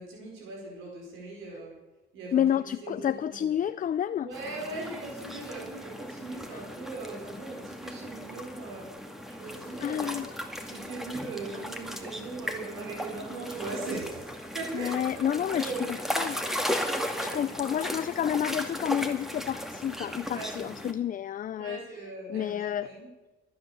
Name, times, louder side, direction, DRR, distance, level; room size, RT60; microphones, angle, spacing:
voice 1, 0.0-1.7 2.1-3.5 4.2-8.9 9.3-10.2 10.6-15.9 16.3-16.8 17.2-17.5 20.3-20.5 21.6-23.1, right 3 dB, 90° right, 4.5 m, -40 dB
voice 2, 2.3-4.3 6.5-6.6 9.8-10.3 14.7-16.4 17.0-21.8 22.3-22.9, left 10 dB, 45° left, 0.4 m, -30 dB
sound 1, 4.3-20.9, equal, ahead, 2.1 m, -36 dB
22.5 x 8.7 x 7.1 m
cardioid pair, 90°, 20 cm